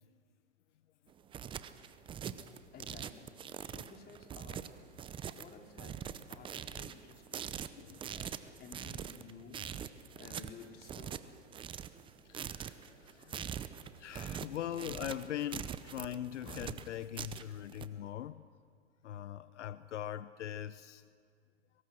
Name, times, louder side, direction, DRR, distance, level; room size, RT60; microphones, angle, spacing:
sound 1, 1.1-17.9, right 8 dB, 15° right, 0.6 m, -43 dB
voice 1, 2.3-12.2 13.2-13.8 14.7-15.0, left 5 dB, 25° left, 3 dB, 2.8 m, -56 dB
voice 2, 7.7-8.5 12.3-13.5 14.0-18.4 19.0-21.0, left 11 dB, 75° left, 15 dB, 0.7 m, -42 dB
23.0 x 23.0 x 6.3 m, 2.1 s
hypercardioid pair, 125°, 37 cm